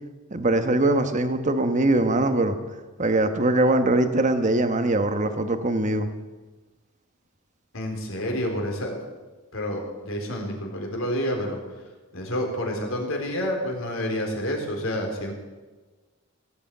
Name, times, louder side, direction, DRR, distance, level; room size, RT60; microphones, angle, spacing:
voice 1, 0.3-2.6 3.0-6.1, right 2 dB, 35° right, 8 dB, 1.1 m, -22 dB
voice 2, 7.7-9.0 9.5-11.6 12.1-15.3, equal, 75° left, 1 dB, 3.7 m, -29 dB
18.5 x 8.5 x 8.5 m, 1.3 s
head